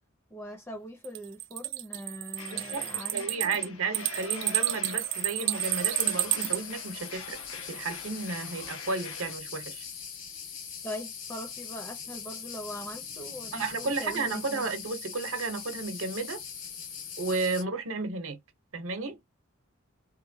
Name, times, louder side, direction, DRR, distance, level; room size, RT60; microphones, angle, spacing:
voice 1, 0.3-3.7 10.8-14.6, equal, 10° left, 0.4 m, -41 dB
sound 1, 1.0-6.6, right 16 dB, 60° right, 0.3 m, -30 dB
sound 2, 2.4-9.3, left 5 dB, 90° left, 0.8 m, -44 dB
voice 2, 2.5-2.9 3.1-7.4 7.7-9.8 13.5-16.4 17.2-18.4 18.7-19.2, right 3 dB, 75° right, 0.7 m, -33 dB
sound 3, 5.6-17.6, left 7 dB, 65° left, 1.1 m, -41 dB
3.0 x 2.1 x 2.6 m
head